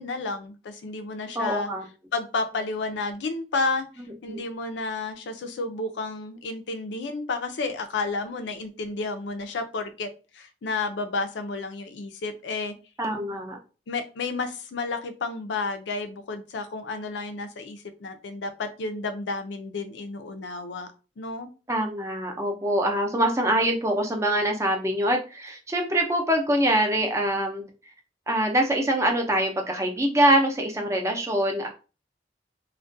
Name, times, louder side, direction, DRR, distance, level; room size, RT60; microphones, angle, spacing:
voice 1, 0.0-1.7 2.1-3.9 4.2-10.1 10.3-12.7 13.9-20.9 21.2-21.5, left 3 dB, 90° left, 8 dB, 0.4 m, -31 dB
voice 2, 1.4-1.8 4.3-4.4 13.0-13.6 21.7-27.6 28.3-31.7, right 1 dB, 15° right, 2 dB, 0.4 m, -24 dB
2.3 x 2.1 x 2.6 m, 0.33 s
head